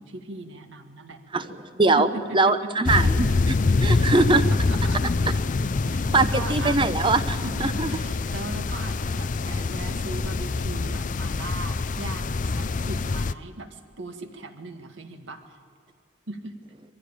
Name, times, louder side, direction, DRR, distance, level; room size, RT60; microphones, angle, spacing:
voice 1, 0.0-1.2 2.0-3.0 3.4-5.0 5.8-6.8 7.2-15.6 16.3-16.6, right 2 dB, 65° right, 5 dB, 1.9 m, -38 dB
voice 2, 1.3-2.1 2.3-3.5 3.8-4.4 6.0-7.9, right 3 dB, 25° right, 10 dB, 0.8 m, -22 dB
sound 1, 2.8-13.3, left 3 dB, 40° left, 0.4 m, -25 dB
22.5 x 15.0 x 9.0 m, 2.3 s
head